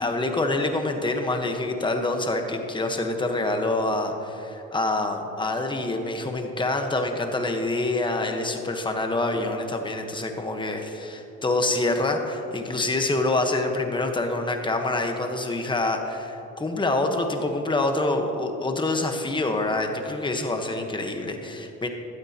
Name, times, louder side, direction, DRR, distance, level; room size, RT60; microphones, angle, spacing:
voice 1, 0.0-21.9, left 2 dB, 15° left, 4 dB, 1.2 m, -26 dB
16.0 x 12.5 x 2.9 m, 3.0 s
cardioid pair, 90°, 30 cm